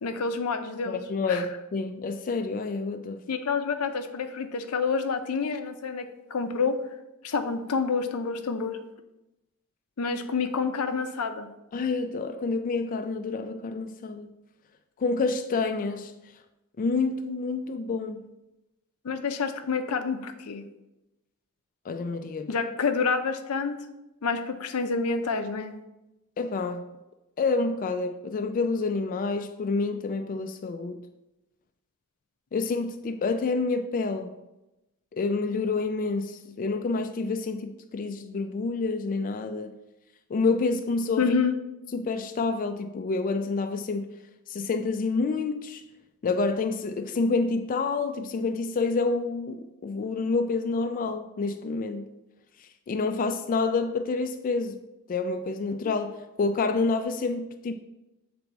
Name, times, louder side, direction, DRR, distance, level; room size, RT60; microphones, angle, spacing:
voice 1, 0.0-1.0 1.3-1.5 3.3-6.8 7.2-8.8 10.0-11.5 19.0-20.6 22.5-23.8 24.2-25.7 41.2-41.5, left 5 dB, 85° left, 0.6 m, -28 dB
voice 2, 0.9-3.2 11.7-14.3 15.0-16.1 16.8-18.2 21.9-22.5 26.4-26.9 27.4-31.1 32.5-34.4 35.1-39.8 40.3-41.3 41.9-44.1 44.5-45.8 46.2-52.1 52.6-54.8 55.1-57.7, left 4 dB, 40° left, 0.3 m, -28 dB
7.0 x 3.4 x 4.0 m
head